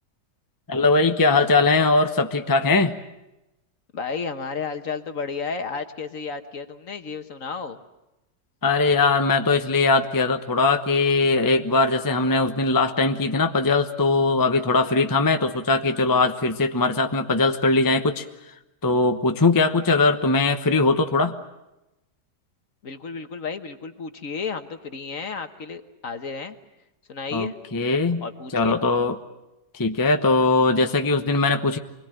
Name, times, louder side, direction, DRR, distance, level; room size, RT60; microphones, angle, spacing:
voice 1, 0.7-3.0 8.6-18.2 18.8-21.4 27.3-28.2 28.5-29.2 29.7-31.8, left 3 dB, 15° left, 6 dB, 0.8 m, -20 dB
voice 2, 3.9-7.8 22.8-26.6 27.1-27.5 28.2-28.8, left 5 dB, 55° left, 8 dB, 1.6 m, -32 dB
25.5 x 21.5 x 9.0 m, 0.95 s
omnidirectional pair, 1.8 m